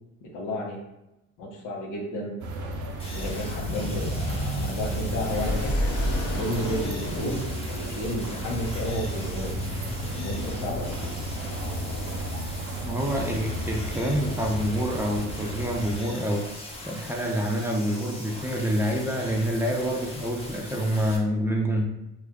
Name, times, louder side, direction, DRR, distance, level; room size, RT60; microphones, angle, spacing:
voice 1, 0.2-0.8 1.4-2.4 3.1-9.7 10.1-11.0, equal, 90° left, -1 dB, 0.8 m, -32 dB
sound 1, 2.4-16.0, right 1 dB, 75° right, 0.5 m, -34 dB
sound 2, 3.0-21.2, left 1 dB, 20° left, 0.8 m, -41 dB
sound 3, 3.1-12.6, equal, 55° left, 0.8 m, -33 dB
voice 2, 12.8-16.5 16.9-21.8, equal, 10° right, 0 dB, 0.5 m, -27 dB
3.0 x 2.3 x 3.5 m, 0.91 s
cardioid pair, 90°, 30 cm